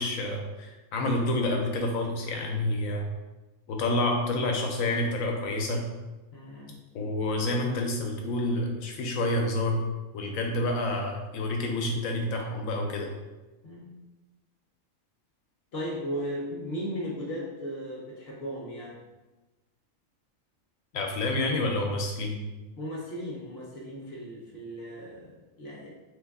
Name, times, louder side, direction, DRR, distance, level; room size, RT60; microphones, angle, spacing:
voice 1, 0.0-3.0 3.7-5.8 6.9-9.8 10.1-13.1 20.9-22.4, left 1 dB, 85° left, 1 dB, 1.0 m, -28 dB
voice 2, 6.3-6.7 13.6-14.0 15.7-19.0 22.8-25.9, equal, 60° left, -3 dB, 0.9 m, -36 dB
3.2 x 2.3 x 3.5 m, 1.1 s
omnidirectional pair, 1.4 m